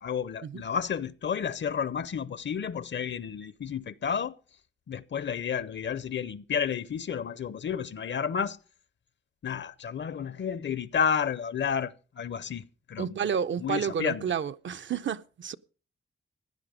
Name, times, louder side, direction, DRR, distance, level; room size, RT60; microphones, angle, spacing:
voice 1, 0.0-4.4 4.9-8.6 9.4-13.2 13.6-14.2, left 7 dB, 60° left, 0.7 m, -31 dB
voice 2, 13.0-15.6, right 7 dB, 65° right, 0.6 m, -30 dB
16.0 x 11.0 x 5.1 m
wide cardioid pair, 125°, 21 cm